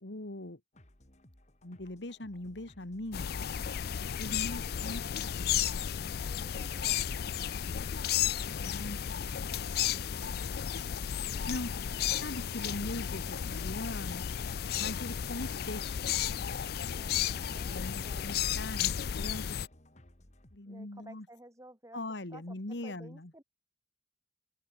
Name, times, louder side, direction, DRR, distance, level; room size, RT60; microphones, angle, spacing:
voice 1, 0.0-0.6 1.6-3.2 4.2-5.5 8.4-9.1 9.9-11.0 11.5-11.7 12.1-14.3 14.8-16.1 17.7-19.6 20.5-21.3 21.9-23.3, left 1 dB, 75° left, 2.1 m, -41 dB
sound 1, 0.7-20.6, left 1 dB, 40° left, 3.1 m, -60 dB
sound 2, 3.1-19.7, left 9 dB, 60° left, 0.4 m, -33 dB
voice 2, 6.2-7.3 11.7-12.1 16.9-18.4 20.7-22.0 22.3-23.4, right 1 dB, 20° right, 6.7 m, -54 dB
open air
head